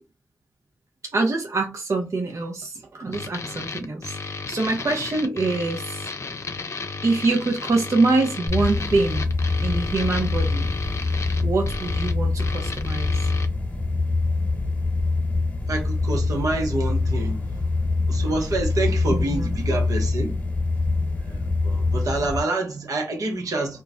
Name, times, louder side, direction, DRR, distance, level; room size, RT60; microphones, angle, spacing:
voice 1, 1.1-6.1 7.0-9.2 9.6-10.7 11.4-13.1 19.3-19.5, right 3 dB, 55° right, 0.6 m, -24 dB
sound 1, 3.1-13.5, left 4 dB, 55° left, 0.5 m, -34 dB
sound 2, 8.5-22.4, left 3 dB, 25° left, 1.0 m, -24 dB
voice 2, 15.7-17.5 18.1-20.3 21.2-23.8, right 2 dB, 80° right, 0.9 m, -27 dB
2.3 x 2.0 x 3.6 m
cardioid pair, 40°, 6 cm